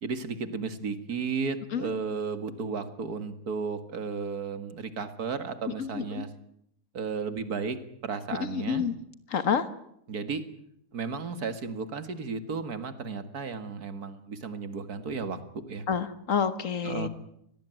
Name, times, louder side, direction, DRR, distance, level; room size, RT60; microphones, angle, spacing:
voice 1, 0.0-6.3 6.9-8.9 10.1-10.4 10.9-15.9 16.8-17.1, right 5 dB, 75° right, 11 dB, 2.3 m, -34 dB
voice 2, 5.7-6.3 8.4-9.0 9.3-9.7 15.9-17.1, left 7 dB, 55° left, 12 dB, 1.8 m, -29 dB
24.0 x 18.5 x 9.2 m, 0.73 s
omnidirectional pair, 1.6 m